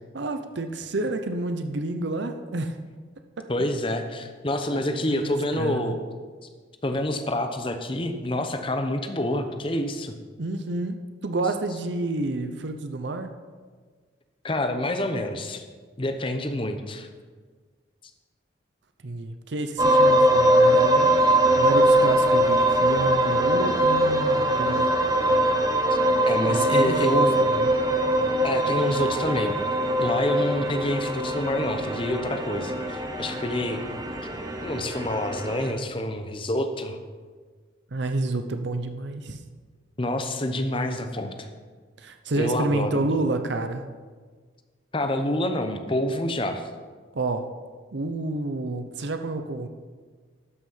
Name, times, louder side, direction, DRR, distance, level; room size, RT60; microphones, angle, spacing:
voice 1, 0.1-2.8 4.7-5.9 10.4-13.3 19.0-21.1 21.5-24.9 26.5-27.7 37.9-39.4 42.0-43.8 47.1-47.5 47.9-49.7, right 2 dB, 70° right, 8 dB, 0.7 m, -29 dB
voice 2, 3.5-6.0 6.8-10.1 14.4-15.6 16.0-17.1 26.3-27.4 28.4-29.6 30.0-33.8 34.6-37.0 40.0-41.5 42.3-43.0 44.9-46.6, left 1 dB, 30° left, 7 dB, 0.8 m, -27 dB
sound 1, 19.8-35.7, right 1 dB, 20° right, 0.8 m, -22 dB
12.5 x 6.2 x 5.7 m, 1.5 s
head